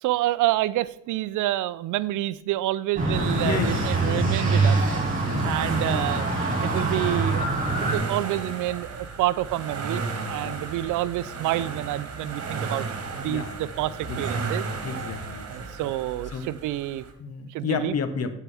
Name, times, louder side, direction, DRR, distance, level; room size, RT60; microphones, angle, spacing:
voice 1, 0.0-4.8 5.4-6.4 6.6-10.0 10.3-12.9 13.2-14.7 15.4-17.0 17.5-18.0, right 15 dB, 85° right, 17 dB, 0.5 m, -28 dB
sound 1, 2.9-8.0, right 3 dB, 25° right, 3.3 m, -24 dB
sound 2, 3.1-17.1, right 4 dB, 55° right, 1.6 m, -34 dB
voice 2, 3.3-4.2 5.1-5.4 5.9-6.0 6.6-6.8 10.3-10.6 13.2-13.7 14.1-14.4 14.8-15.7 16.3-16.5 17.2-18.3, left 6 dB, 55° left, 10 dB, 1.1 m, -32 dB
12.5 x 4.6 x 3.5 m, 0.83 s
cardioid pair, 90°, 30 cm